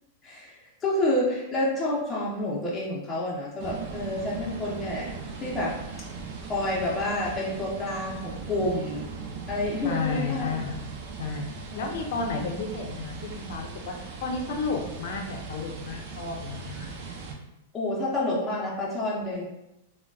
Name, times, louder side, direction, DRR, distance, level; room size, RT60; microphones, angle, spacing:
voice 1, 0.2-5.1 5.4-5.8 6.4-9.1 9.5-10.6 11.7-11.9 17.7-19.5, left 1 dB, 15° left, -6 dB, 0.7 m, -29 dB
sound 1, 3.6-17.3, right 4 dB, 50° right, 0.5 m, -39 dB
voice 2, 9.8-10.8 11.2-11.4 11.7-13.9 14.2-16.9, left 4 dB, 65° left, 2 dB, 0.6 m, -32 dB
3.7 x 2.2 x 2.3 m, 0.89 s
hypercardioid pair, 135°, 0 cm